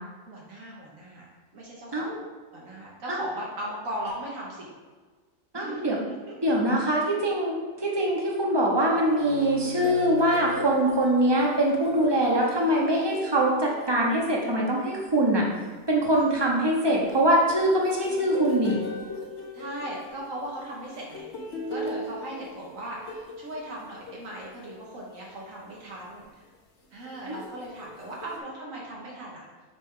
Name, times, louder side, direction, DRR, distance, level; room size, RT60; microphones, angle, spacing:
voice 1, 0.3-1.3 1.5-2.1 2.5-4.7 5.5-6.3 11.6-11.9 19.5-21.2 21.7-26.4 26.9-29.7, right 1 dB, 70° right, -4 dB, 1.4 m, -38 dB
voice 2, 5.5-6.0 6.4-15.5 15.9-18.8 27.3-27.4, right 1 dB, 20° right, -2 dB, 0.8 m, -23 dB
sound 1, 9.1-14.9 16.8-25.0 25.7-25.9 27.1-28.4, left 1 dB, 60° left, 1.0 m, -39 dB
sound 2, 9.1-12.6, right 1 dB, 55° right, 1.0 m, -44 dB
5.8 x 4.5 x 3.7 m, 1.4 s
omnidirectional pair, 1.4 m